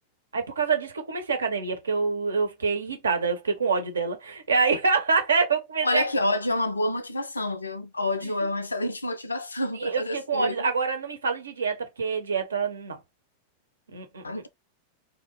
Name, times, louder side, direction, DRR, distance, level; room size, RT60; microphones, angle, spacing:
voice 1, 0.3-6.0 8.2-8.3 9.8-13.0 13.9-14.2, right 5 dB, 70° right, 0.7 m, -26 dB
voice 2, 5.8-10.7 14.2-14.5, left 1 dB, 80° left, 0.4 m, -28 dB
2.7 x 2.1 x 3.9 m
figure-of-eight pair, 90°, 0 cm